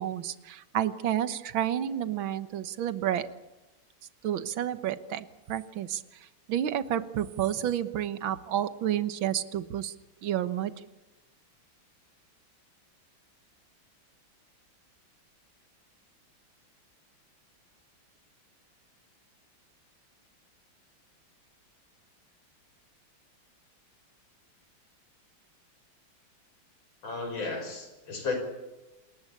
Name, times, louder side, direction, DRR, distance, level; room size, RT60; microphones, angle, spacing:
voice 1, 0.0-3.3 4.2-9.9 10.2-10.7, right 11 dB, 75° right, 11 dB, 1.9 m, -30 dB
voice 2, 27.0-28.4, left 4 dB, 70° left, 6 dB, 6.3 m, -33 dB
28.0 x 21.0 x 8.6 m, 1.1 s
omnidirectional pair, 2.2 m